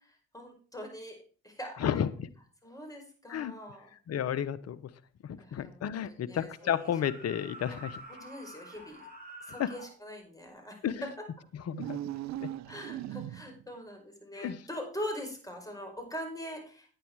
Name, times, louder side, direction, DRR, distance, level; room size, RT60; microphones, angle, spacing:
voice 1, 0.3-1.2 1.4-1.9 2.6-3.9 5.4-5.8 6.1-6.5 8.1-9.0 9.5-10.7 12.7-16.8, equal, 10° left, 2 dB, 5.2 m, -42 dB
voice 2, 1.8-2.3 3.3-3.5 4.1-4.9 5.2-8.0 9.6-9.7 10.8-11.1 11.5-12.0 12.4-12.5 14.3-14.6, left 9 dB, 55° left, 15 dB, 0.9 m, -32 dB
sound 1, 6.5-9.9, right 2 dB, 30° right, 6.6 m, -48 dB
sound 2, 11.7-13.7, right 13 dB, 65° right, 0.5 m, -38 dB
9.7 x 9.1 x 4.7 m, 0.41 s
hypercardioid pair, 50°, 30 cm